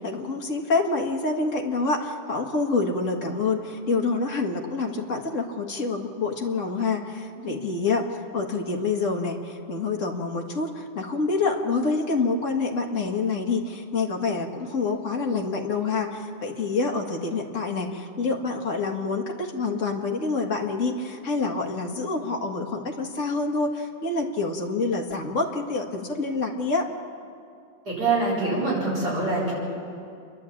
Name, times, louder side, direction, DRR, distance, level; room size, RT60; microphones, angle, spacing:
voice 1, 0.0-26.9, left 3 dB, 40° left, 2 dB, 2.0 m, -27 dB
voice 2, 27.8-29.5, right 3 dB, 55° right, -6 dB, 8.3 m, -25 dB
28.5 x 11.5 x 8.7 m, 2.4 s
omnidirectional pair, 2.0 m